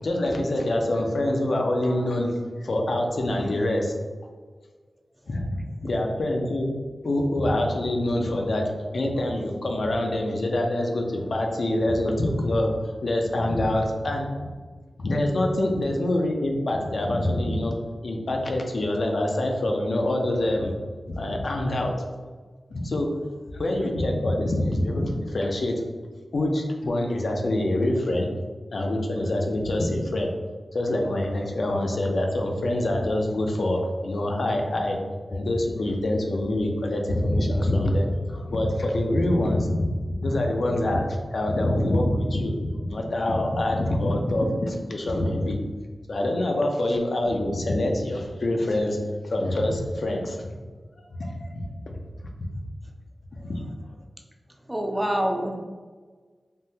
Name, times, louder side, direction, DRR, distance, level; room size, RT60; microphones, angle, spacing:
voice 1, 0.0-2.3 2.6-3.9 5.3-5.6 5.8-6.7 7.0-14.5 15.0-17.8 18.0-20.7 21.1-21.9 22.7-23.1 23.5-25.8 26.3-28.3 28.7-30.3 30.7-35.0 35.3-39.8 40.2-41.0 41.3-45.6 46.1-49.0 49.2-50.5 51.2-52.0 53.4-53.6, left 1 dB, 70° left, 1 dB, 0.4 m, -25 dB
voice 2, 54.7-55.6, equal, 10° right, 2 dB, 0.4 m, -26 dB
3.5 x 2.1 x 2.7 m, 1.4 s
wide cardioid pair, 100°, 0 cm